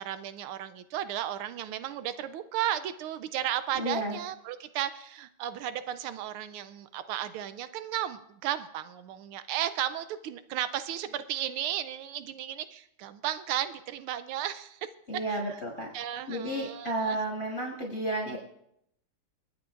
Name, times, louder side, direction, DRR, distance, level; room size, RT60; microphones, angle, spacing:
voice 1, 0.0-14.9 15.3-15.4 15.9-17.2, right 11 dB, 85° right, 12 dB, 1.5 m, -34 dB
voice 2, 3.7-4.2 15.1-15.9 16.3-18.4, right 1 dB, 30° left, -1 dB, 6.4 m, -32 dB
28.5 x 9.7 x 2.5 m, 0.76 s
omnidirectional pair, 2.3 m